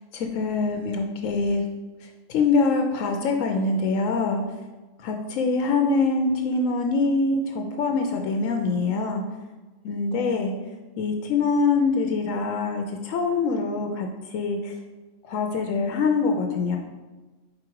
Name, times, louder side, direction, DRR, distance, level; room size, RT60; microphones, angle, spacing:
voice 1, 0.1-1.6 2.3-4.4 5.0-9.2 9.8-10.5 11.0-14.8 15.3-16.8, left 4 dB, 85° left, 4 dB, 1.0 m, -24 dB
4.8 x 4.5 x 4.5 m, 1.2 s
omnidirectional pair, 1.3 m